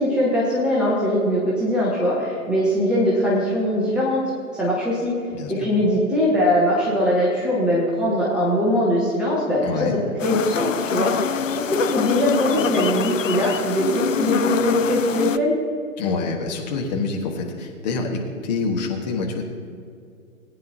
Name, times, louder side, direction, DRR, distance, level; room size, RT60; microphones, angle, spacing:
voice 1, 0.0-4.2 4.6-5.1 5.5-11.2 11.5-15.5, equal, ahead, -7 dB, 0.9 m, -21 dB
voice 2, 5.3-5.7 9.6-10.0 16.0-19.4, left 4 dB, 30° left, 1 dB, 1.4 m, -26 dB
sound 1, 10.2-15.4, left 7 dB, 60° left, 0.6 m, -25 dB
19.5 x 9.3 x 2.8 m, 2.4 s
figure-of-eight pair, 125°, 44 cm